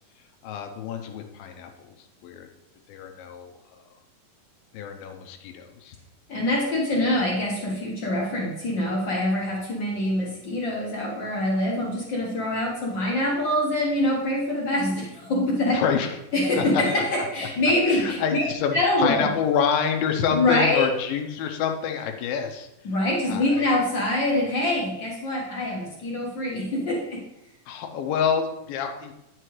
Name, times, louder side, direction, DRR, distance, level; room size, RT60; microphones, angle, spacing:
voice 1, 0.4-1.7 2.2-2.5 2.9-3.5 4.7-5.9 15.7-16.1 16.6-16.8 17.9-22.7 23.3-23.7 27.7-29.1, left 7 dB, 90° left, 5 dB, 2.6 m, -27 dB
voice 2, 6.3-15.8 16.3-18.4 18.7-19.3 20.3-20.9 22.8-27.2, left 1 dB, 55° left, -3 dB, 1.2 m, -24 dB
9.1 x 6.7 x 3.2 m, 0.87 s
omnidirectional pair, 4.2 m